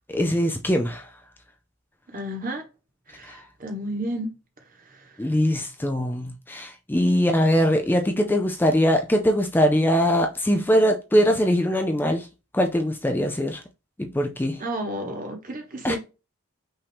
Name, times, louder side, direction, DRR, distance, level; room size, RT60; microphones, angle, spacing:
voice 1, 0.1-1.1 3.2-3.5 5.2-12.3 12.5-13.6 14.0-14.6 15.8-16.0, equal, 10° left, 0.3 m, -22 dB
voice 2, 2.1-2.6 3.1-4.3 4.8-5.3 14.6-16.0, right 1 dB, 35° right, 1.2 m, -32 dB
5.6 x 2.7 x 3.4 m
head